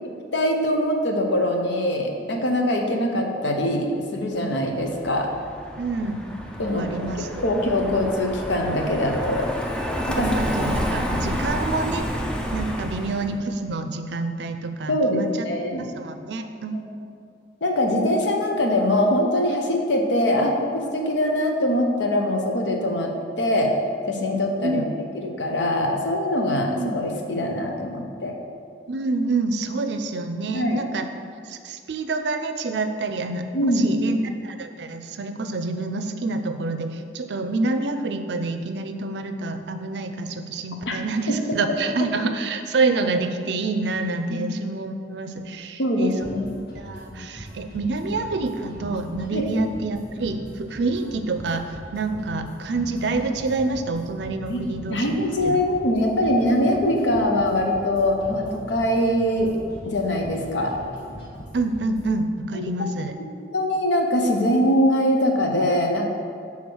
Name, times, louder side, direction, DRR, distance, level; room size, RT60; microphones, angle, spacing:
voice 1, 0.3-5.3 6.6-9.5 10.1-10.3 14.9-15.9 16.7-16.8 17.6-23.7 24.1-24.8 25.2-28.3 30.5-30.8 33.5-34.2 40.9-41.0 41.3-41.4 44.3-44.5 45.8-46.5 49.3-49.5 54.5-54.6 54.9-59.6 59.8-60.7 62.5-62.6 63.5-66.1, left 1 dB, 90° left, 2 dB, 0.8 m, -23 dB
Car passing by, 4.8-13.3, equal, 5° left, 0.4 m, -29 dB
voice 2, 5.8-6.2 6.8-7.4 10.1-12.1 12.5-15.5 16.0-16.8 24.6-24.9 26.7-27.0 28.9-31.1 31.4-46.4 46.7-55.1 55.4-55.6 61.5-63.1, right 3 dB, 70° right, 7 dB, 0.5 m, -27 dB
sound 1, 46.2-62.2, equal, 70° left, 1.7 m, -40 dB
6.3 x 3.6 x 6.1 m, 2.3 s
head